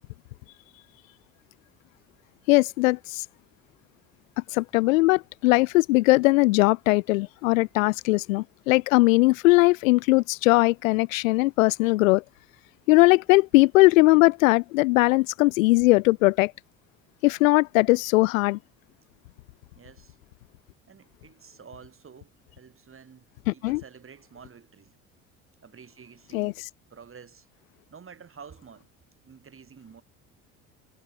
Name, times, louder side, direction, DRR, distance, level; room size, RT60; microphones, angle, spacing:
voice 1, 2.5-3.2 4.5-12.2 12.9-16.5 17.2-18.6 23.5-23.8 26.3-26.5, left 22 dB, 75° left, 0.5 m, -20 dB
voice 2, 19.7-20.2 20.9-23.2 23.5-25.0 25.6-26.6 26.9-27.5 27.9-28.9 29.2-30.0, right 6 dB, 30° right, 4.9 m, -49 dB
hypercardioid pair, 65°, 40 cm